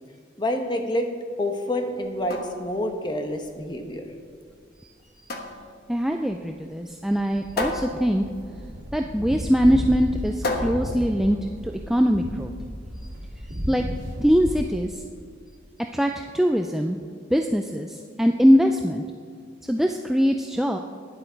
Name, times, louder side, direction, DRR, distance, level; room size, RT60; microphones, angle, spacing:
voice 1, 0.4-1.1 1.4-4.1, left 1 dB, 25° left, 5 dB, 1.0 m, -27 dB
sound 1, 2.0-12.0, left 2 dB, 50° left, 1.1 m, -35 dB
voice 2, 5.9-8.2 8.9-11.4 11.6-12.5 13.0-13.1 13.5-13.8 14.2-15.0 15.9-17.0 17.3-19.0 19.7-20.8, equal, ahead, 3 dB, 0.3 m, -22 dB
sound 2, 7.2-14.6, equal, 90° right, 2.1 m, -34 dB
11.5 x 10.0 x 4.6 m, 2.1 s
head